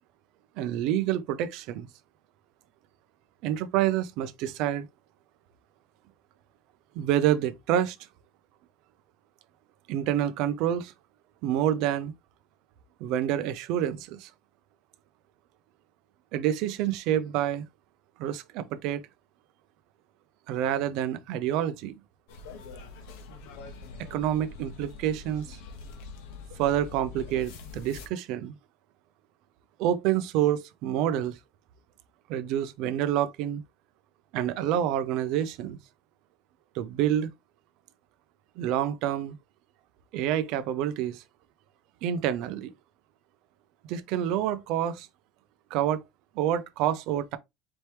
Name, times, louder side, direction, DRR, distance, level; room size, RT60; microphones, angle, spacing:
voice 1, 0.6-1.9 3.4-4.9 7.0-8.0 9.9-10.9 11.4-12.1 13.0-14.3 16.3-17.7 18.2-19.0 20.5-22.0 24.0-25.6 26.6-28.5 29.8-31.3 32.3-33.6 34.3-35.8 36.7-37.3 38.6-39.4 40.1-41.2 42.0-42.7 43.9-45.1 45.7-46.0 46.4-47.4, right 11 dB, 55° right, 0.5 m, -28 dB
sound 1, 22.3-28.1, left 4 dB, 90° left, 1.0 m, -44 dB
4.3 x 3.0 x 3.3 m
cardioid pair, 180°, 0 cm